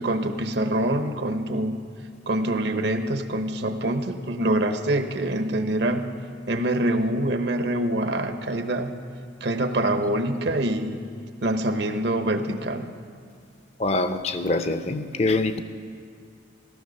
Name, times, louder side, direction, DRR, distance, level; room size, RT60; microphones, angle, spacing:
voice 1, 0.0-1.8 2.3-6.0 6.5-8.9 9.4-11.0 11.4-12.9, right 1 dB, 60° right, 8 dB, 0.9 m, -25 dB
voice 2, 13.8-15.6, left 2 dB, 35° left, 9 dB, 0.5 m, -24 dB
16.0 x 13.0 x 6.4 m, 2.2 s
head